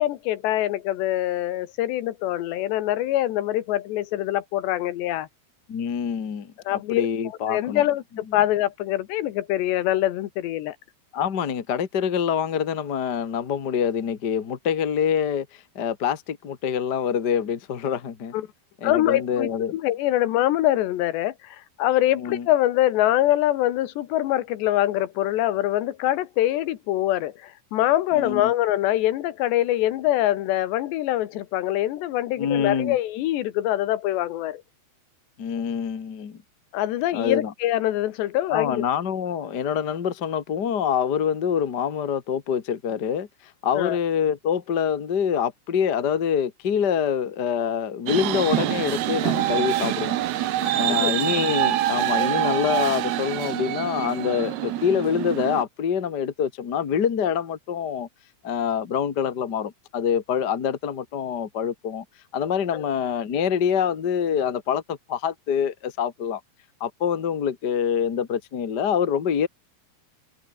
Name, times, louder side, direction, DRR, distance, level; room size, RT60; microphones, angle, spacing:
voice 1, 0.0-5.3 6.7-7.1 7.5-10.8 18.3-18.5 18.8-34.6 36.7-38.8 43.8-44.0 50.6-51.1 62.7-62.9, left 14 dB, 80° left, 3.5 m, -24 dB
voice 2, 5.7-7.8 11.1-18.3 18.8-19.7 22.2-22.5 28.1-28.5 32.4-33.0 35.4-36.4 37.1-37.5 38.5-50.2 50.7-58.1 58.4-62.0 62.3-66.4 66.8-69.5, left 8 dB, 50° left, 1.2 m, -25 dB
sound 1, 48.1-55.6, right 13 dB, 75° right, 3.3 m, -25 dB
omnidirectional pair, 5.0 m